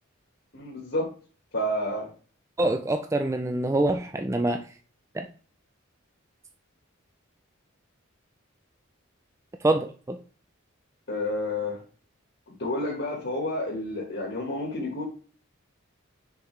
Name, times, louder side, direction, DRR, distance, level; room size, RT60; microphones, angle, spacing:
voice 1, 0.5-1.1 1.5-2.1 11.1-11.8 12.6-15.0, left 1 dB, 50° left, -2 dB, 1.6 m, -30 dB
voice 2, 2.6-4.7 5.1-5.3 9.6-10.2, right 2 dB, 15° right, 6 dB, 0.3 m, -25 dB
6.6 x 4.6 x 3.2 m, 0.39 s
head